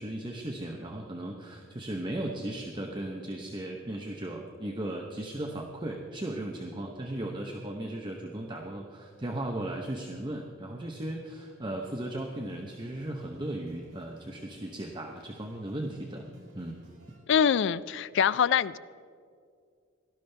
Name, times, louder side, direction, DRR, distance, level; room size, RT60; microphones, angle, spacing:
voice 1, 0.0-16.3 16.5-16.8, right 1 dB, 25° right, 1 dB, 0.9 m, -36 dB
sound 1, 11.8-17.2, left 1 dB, 85° right, 4.2 m, -57 dB
voice 2, 17.3-18.8, left 7 dB, 60° left, 17 dB, 0.4 m, -24 dB
18.0 x 12.5 x 3.4 m, 2.2 s
head